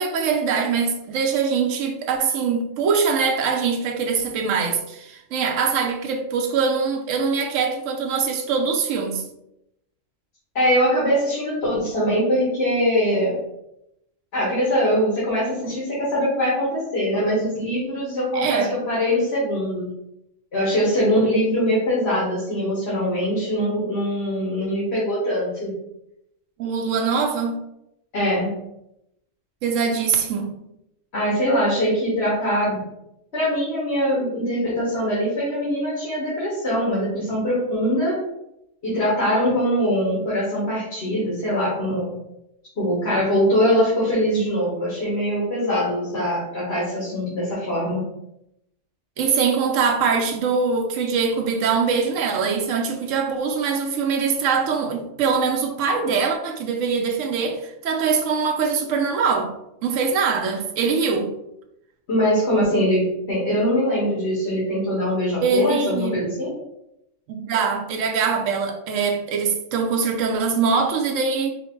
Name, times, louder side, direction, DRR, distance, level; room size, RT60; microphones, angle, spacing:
voice 1, 0.0-9.2 18.3-18.8 26.6-27.6 29.6-30.6 49.2-59.5 59.8-61.3 65.4-66.2 67.3-71.5, right 5 dB, 80° right, 2 dB, 1.0 m, -23 dB
voice 2, 10.6-13.4 14.3-19.9 20.5-25.7 28.1-28.5 31.1-32.8 33.3-38.2 38.8-42.1 42.8-48.0 62.1-66.5, equal, 55° left, -8 dB, 1.8 m, -22 dB
4.9 x 2.1 x 4.3 m, 0.82 s
omnidirectional pair, 1.3 m